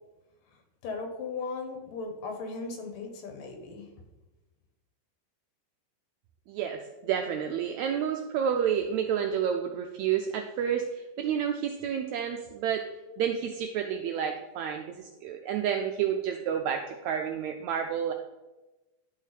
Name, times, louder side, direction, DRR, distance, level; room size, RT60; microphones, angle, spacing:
voice 1, 0.8-3.9, left 4 dB, 85° left, 5 dB, 2.8 m, -37 dB
voice 2, 6.5-12.8 13.2-18.1, right 8 dB, 85° right, 4 dB, 1.6 m, -30 dB
10.5 x 5.0 x 4.1 m, 1.1 s
omnidirectional pair, 3.8 m